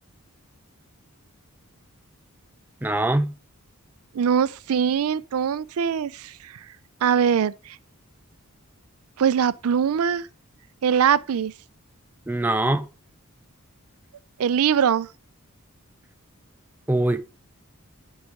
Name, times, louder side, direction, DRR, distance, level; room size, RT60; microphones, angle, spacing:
voice 1, 2.8-3.3 12.3-12.9 16.9-17.2, right 1 dB, 10° right, 0.4 m, -22 dB
voice 2, 4.1-6.3 7.0-7.5 9.2-10.3 10.8-11.5 14.4-15.1, right 7 dB, 75° right, 0.4 m, -22 dB
9.1 x 4.8 x 5.0 m
head